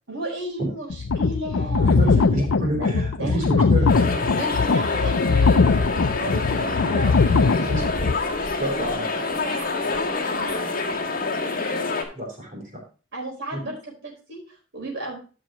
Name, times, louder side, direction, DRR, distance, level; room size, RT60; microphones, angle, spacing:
voice 1, 0.1-3.7 4.3-8.0 8.6-12.0 13.1-15.2, right 1 dB, 65° right, -1 dB, 4.4 m, -35 dB
sound 1, 0.9-8.1, left 4 dB, 85° left, 0.6 m, -20 dB
voice 2, 1.8-4.2 7.5-8.1 8.6-9.1 12.1-12.8 13.5-13.6, right 1 dB, 40° right, 1 dB, 3.5 m, -28 dB
sound 2, 3.9-12.0, left 3 dB, 45° left, 1.8 m, -26 dB
13.5 x 6.1 x 2.9 m, 0.36 s
head